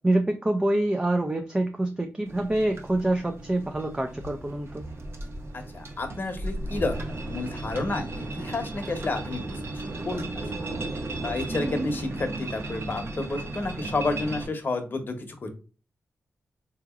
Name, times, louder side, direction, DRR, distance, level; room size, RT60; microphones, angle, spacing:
voice 1, 0.0-4.8, right 1 dB, 20° right, 0.4 m, -26 dB
sound 1, 2.3-14.5, right 2 dB, 60° right, 0.9 m, -35 dB
voice 2, 5.5-10.5 11.2-15.6, left 3 dB, 45° left, 0.9 m, -31 dB
3.7 x 2.8 x 2.4 m
cardioid pair, 70°, 5 cm